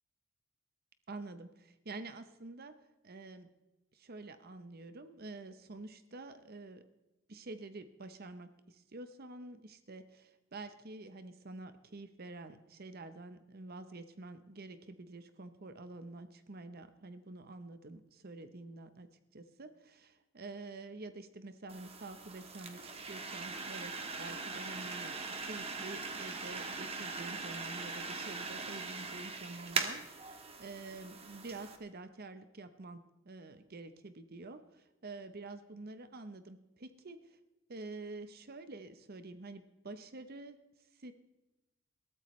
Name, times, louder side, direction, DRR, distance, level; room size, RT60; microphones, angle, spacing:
voice 1, 1.1-2.8 3.0-3.5 3.9-6.8 7.3-37.4 37.7-40.6 40.9-41.1, right 2 dB, 50° right, 10 dB, 0.8 m, -48 dB
sound 1, 21.7-31.8, right 4 dB, 30° right, 1.4 m, -41 dB
21.0 x 13.5 x 3.2 m, 0.99 s
head